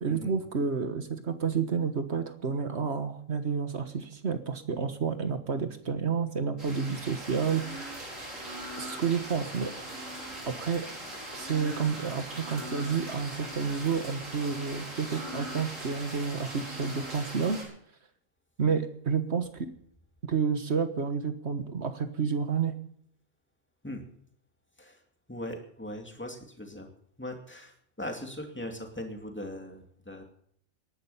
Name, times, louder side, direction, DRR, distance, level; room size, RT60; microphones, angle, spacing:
voice 1, 0.0-7.9 8.8-9.7 10.5-10.9 11.3-17.6 18.6-19.7 20.2-22.8, right 6 dB, 55° right, 9 dB, 1.6 m, -30 dB
sound 1, 6.6-17.6, right 1 dB, 80° right, 5.5 m, -40 dB
voice 2, 25.3-26.9 27.2-30.2, left 1 dB, 10° left, 3 dB, 2.5 m, -39 dB
19.0 x 11.5 x 5.7 m, 0.66 s
omnidirectional pair, 1.3 m